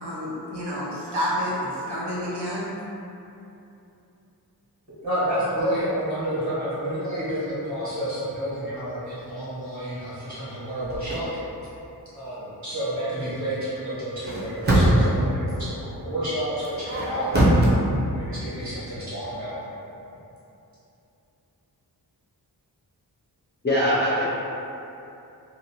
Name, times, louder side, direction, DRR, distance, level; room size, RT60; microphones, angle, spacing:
voice 1, 0.0-2.7, equal, 85° right, -8 dB, 0.7 m, -29 dB
voice 2, 5.0-11.3 12.1-17.7 18.1-19.6, right 1 dB, 45° right, -12 dB, 1.3 m, -29 dB
sound 1, 10.8-11.2 14.1-15.2 16.6-17.7, right 1 dB, 25° right, 0.5 m, -21 dB
voice 3, 23.6-24.3, equal, 30° left, -8 dB, 0.4 m, -21 dB
2.5 x 2.0 x 2.8 m, 2.8 s
wide cardioid pair, 120°, 39 cm